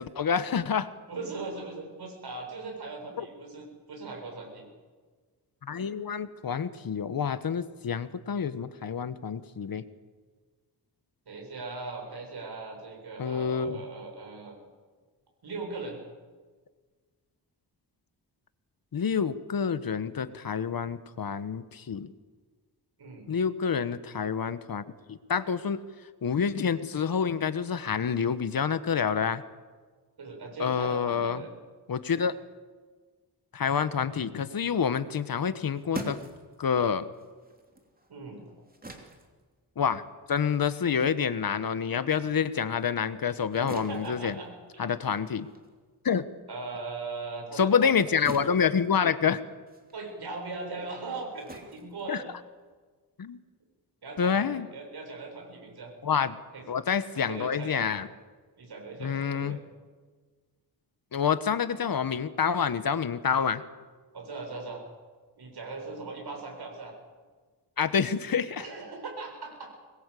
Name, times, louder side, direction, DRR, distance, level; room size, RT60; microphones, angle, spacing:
voice 1, 0.0-0.9 3.2-3.3 5.6-9.8 13.2-13.8 18.9-22.1 23.3-25.8 26.2-29.4 30.6-31.4 31.9-32.3 33.5-36.2 36.6-37.1 39.8-40.0 40.3-44.3 44.8-45.5 46.0-46.2 47.6-49.4 52.1-52.2 53.2-53.4 54.2-54.7 56.0-56.4 56.7-58.1 59.0-59.6 61.1-63.6 67.8-68.6, left 7 dB, 55° left, 13 dB, 1.2 m, -28 dB
voice 2, 1.1-4.7 11.3-14.5 15.4-16.0 23.0-23.3 30.2-31.5 38.1-38.4 43.6-44.8 46.5-48.3 49.9-52.2 54.0-55.9 56.5-56.6 57.1-57.9 58.6-59.6 64.1-64.8 65.4-66.9 68.6-69.8, right 3 dB, 65° right, 1 dB, 7.6 m, -39 dB
sound 1, 35.4-42.2 42.6-52.8, right 2 dB, 20° right, 3.3 m, -46 dB
24.5 x 21.0 x 8.4 m, 1.4 s
wide cardioid pair, 145°, 41 cm